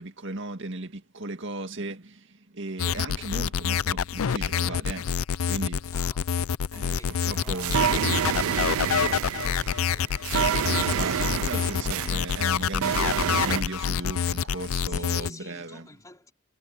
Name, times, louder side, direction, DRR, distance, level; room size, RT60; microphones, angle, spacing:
voice 1, 0.0-5.1 5.5-5.8 6.7-7.0 7.2-7.8 10.8-15.9, right 2 dB, 60° right, 2.2 m, -36 dB
sound 1, 2.8-15.3, left 7 dB, 80° left, 0.5 m, -27 dB
voice 2, 5.9-6.4 6.7-12.4 13.8-14.1 14.8-16.3, left 2 dB, 15° left, 4.8 m, -49 dB
sound 2, 6.9-13.6, right 8 dB, 80° right, 0.4 m, -28 dB
head